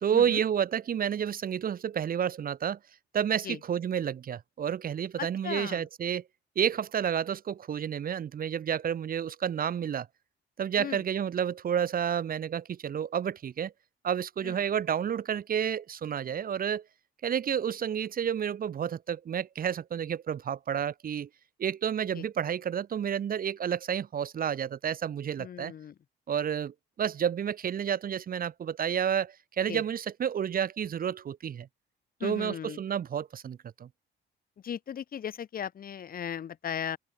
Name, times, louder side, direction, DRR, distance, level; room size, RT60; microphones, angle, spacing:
voice 1, 0.0-2.8 3.1-6.2 6.6-10.1 10.6-13.7 14.0-16.8 17.2-21.3 21.6-25.7 26.3-31.7 32.2-33.9, right 8 dB, 45° right, 0.8 m, -30 dB
voice 2, 5.2-5.8 10.8-11.0 14.4-14.6 22.1-22.2 25.4-25.9 29.7-29.8 32.2-32.8 34.6-37.0, left 8 dB, 50° left, 0.8 m, -37 dB
open air
cardioid pair, 90°, 20 cm